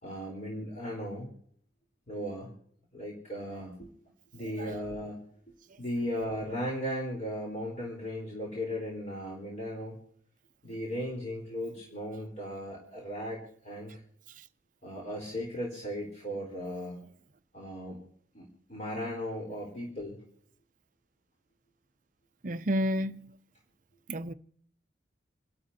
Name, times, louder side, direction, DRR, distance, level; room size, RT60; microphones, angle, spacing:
voice 1, 0.0-1.3 2.1-2.5 2.9-3.9 4.3-5.2 5.8-10.0 10.6-14.0 14.8-17.0 17.5-18.0 18.3-20.2, equal, 40° left, 4.0 m, -36 dB
voice 2, 22.4-23.3 24.1-24.3, equal, 40° right, 0.6 m, -30 dB
28.5 x 12.5 x 2.8 m
head